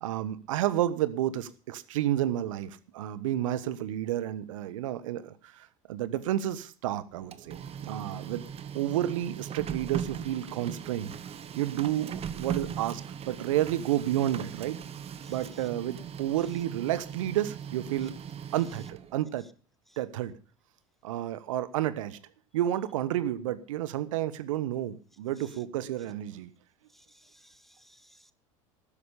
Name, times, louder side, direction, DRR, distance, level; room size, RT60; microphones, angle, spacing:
voice 1, 0.0-8.5 8.7-11.1 11.6-14.8 15.3-18.1 18.5-19.4 20.0-20.4 21.0-22.2 22.5-26.5, right 12 dB, 75° right, 15 dB, 1.2 m, -31 dB
Printer, 7.1-19.2, right 8 dB, 35° right, 1.4 m, -39 dB
voice 2, 15.2-15.6 26.9-28.3, equal, ahead, 14 dB, 1.1 m, -60 dB
12.5 x 9.9 x 6.9 m, 0.38 s
hypercardioid pair, 80°, 17 cm